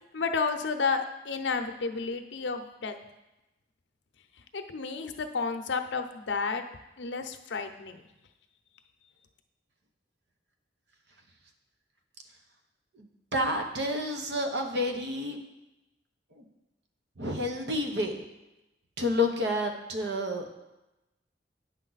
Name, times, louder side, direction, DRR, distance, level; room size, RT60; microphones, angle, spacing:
voice 1, 0.1-2.9 4.5-6.6 7.0-8.0, left 4 dB, 80° left, 7 dB, 0.6 m, -31 dB
voice 2, 12.9-15.4 16.4-16.5 17.2-18.2 19.0-20.4, left 1 dB, 70° right, 3 dB, 1.0 m, -30 dB
9.0 x 6.0 x 4.0 m, 0.98 s
head